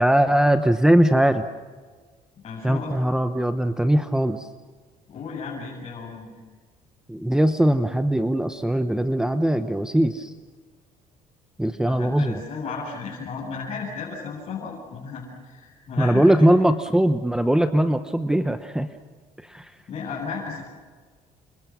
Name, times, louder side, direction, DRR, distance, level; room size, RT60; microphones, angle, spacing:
voice 1, 0.0-1.4 2.6-4.5 7.1-10.3 11.6-12.4 16.0-18.9 19.4-19.7, right 1 dB, 5° right, 9 dB, 1.0 m, -20 dB
voice 2, 2.4-3.0 5.1-6.5 11.8-16.5 19.9-20.6, left 5 dB, 45° left, -5 dB, 7.8 m, -34 dB
29.5 x 26.5 x 6.2 m, 1.5 s
cardioid pair, 105°, 14 cm